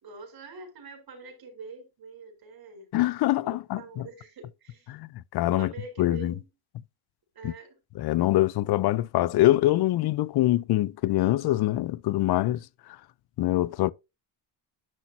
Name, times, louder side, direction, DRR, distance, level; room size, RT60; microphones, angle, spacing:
voice 1, 0.0-2.9 3.3-5.0 5.6-6.5 7.3-7.8, right 4 dB, 45° right, 4.3 m, -45 dB
voice 2, 2.9-4.1 4.9-5.7 6.0-6.3 7.4-7.5 8.0-12.7 13.4-13.9, left 15 dB, 55° left, 0.5 m, -24 dB
10.5 x 5.9 x 2.8 m
cardioid pair, 115°, 49 cm